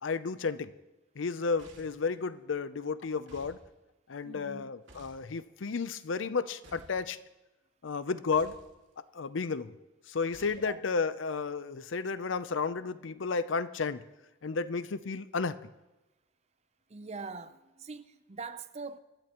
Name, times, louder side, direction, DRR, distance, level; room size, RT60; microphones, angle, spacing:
voice 1, 0.0-0.7 1.2-3.6 4.1-7.2 7.8-8.6 9.1-9.7 10.1-14.0 14.4-15.6, left 4 dB, 80° left, 0.6 m, -32 dB
sound 1, 1.6-2.1 3.3-3.6 4.9-5.2 6.6-7.0 8.3-8.7 10.3-10.7, right 2 dB, 75° right, 2.3 m, -54 dB
voice 2, 4.2-4.7 10.5-10.8 16.9-19.0, right 4 dB, 35° right, 0.6 m, -43 dB
25.5 x 12.0 x 3.0 m
head